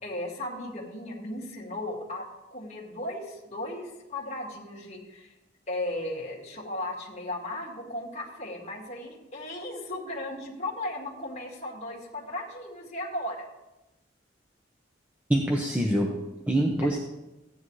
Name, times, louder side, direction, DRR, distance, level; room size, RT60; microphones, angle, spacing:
voice 1, 0.0-2.3 2.5-5.3 5.7-13.5 16.8-16.9, left 1 dB, 35° left, -3 dB, 2.2 m, -36 dB
voice 2, 15.3-17.0, right 1 dB, 10° right, -1 dB, 0.9 m, -25 dB
15.0 x 9.9 x 3.2 m, 1.0 s
head